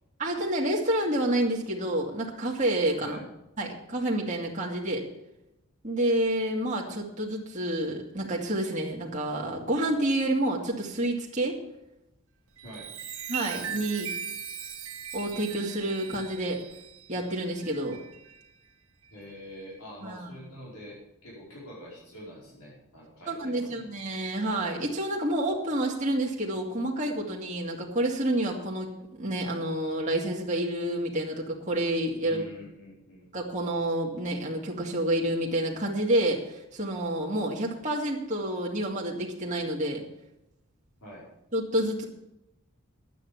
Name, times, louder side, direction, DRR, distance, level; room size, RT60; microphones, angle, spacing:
voice 1, 0.2-3.2 3.6-5.1 5.8-11.6 13.3-14.1 15.1-16.6 17.1-18.0 20.0-20.3 23.3-28.9 29.2-32.4 33.3-40.0 41.5-42.0, right 1 dB, 35° right, -3 dB, 2.1 m, -29 dB
Chime, 12.5-18.5 19.0-19.3, right 8 dB, 75° right, 1.7 m, -39 dB
voice 2, 12.6-12.9 19.1-23.8 32.2-33.3 41.0-41.3, equal, 90° left, -5 dB, 5.0 m, -45 dB
11.5 x 9.1 x 7.1 m, 0.86 s
head